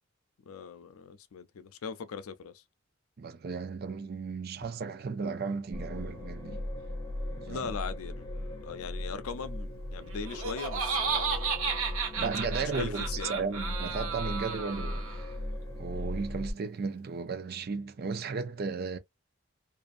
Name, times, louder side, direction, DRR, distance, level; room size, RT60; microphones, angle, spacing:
voice 1, 0.5-2.6 7.5-11.5 12.6-13.4, left 6 dB, 80° left, 0.4 m, -40 dB
voice 2, 3.2-6.6 7.3-7.7 12.2-15.3 15.8-19.0, right 4 dB, 45° right, 0.4 m, -35 dB
sound 1, 5.7-16.5, left 1 dB, 20° left, 0.9 m, -38 dB
Laughter, 10.1-15.3, right 5 dB, 80° right, 1.0 m, -33 dB
2.5 x 2.5 x 2.4 m
head